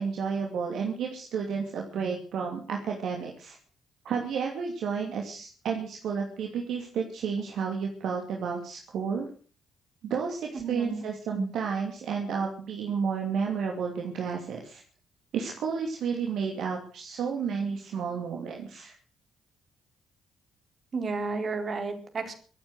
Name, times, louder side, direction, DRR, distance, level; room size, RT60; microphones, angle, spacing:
voice 1, 0.0-3.6 4.0-9.3 10.0-14.8 15.3-18.9, right 6 dB, 60° right, 1 dB, 2.7 m, -31 dB
voice 2, 10.5-11.0 11.3-11.5 20.9-22.3, right 3 dB, 45° right, 5 dB, 4.2 m, -32 dB
23.5 x 8.9 x 6.4 m, 0.42 s
figure-of-eight pair, 40°, 0 cm